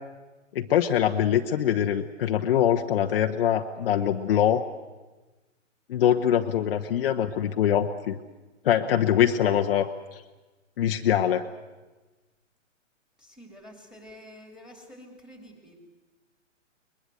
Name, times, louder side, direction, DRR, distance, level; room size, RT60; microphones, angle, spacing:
voice 1, 0.5-4.6 5.9-8.2 8.6-9.9 10.8-11.4, left 10 dB, 45° left, 4 dB, 1.0 m, -23 dB
voice 2, 13.2-15.8, equal, ahead, 4 dB, 3.0 m, -48 dB
22.0 x 21.5 x 7.8 m, 1.2 s
hypercardioid pair, 145°, 38 cm